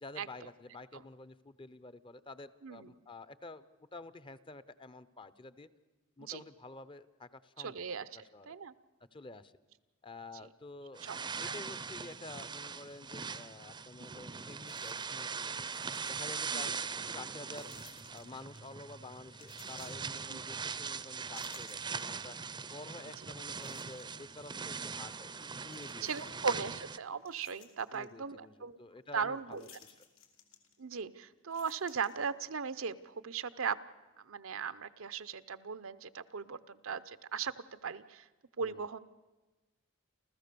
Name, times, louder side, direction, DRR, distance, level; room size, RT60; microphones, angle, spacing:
voice 1, 0.0-3.7 3.9-5.7 6.2-7.9 8.1-8.6 9.1-9.5 10.0-11.1 11.4-15.6 16.1-16.8 17.1-17.7 18.1-22.4 22.7-26.5 27.9-29.9 38.6-38.9, left 2 dB, 25° left, 15 dB, 0.7 m, -50 dB
voice 2, 7.6-8.1 8.5-8.7 11.0-11.2 11.4-11.5 16.5-16.7 20.3-20.4 26.0-28.8 29.1-29.6 30.8-33.8 34.3-38.2 38.6-39.0, right 6 dB, 75° right, 13 dB, 0.7 m, -38 dB
sound 1, 10.9-27.0, right 5 dB, 20° right, 0.6 m, -41 dB
sound 2, 14.1-14.2 14.6-15.4 15.6-16.6 17.5-18.7 19.3-20.7 21.1-22.4 22.9-23.0 23.6-24.4 25.7-26.5 27.0-28.1 29.5-31.0 31.4-32.6, left 8 dB, 85° left, 2.8 m, -59 dB
29.0 x 14.0 x 6.9 m, 1.2 s
head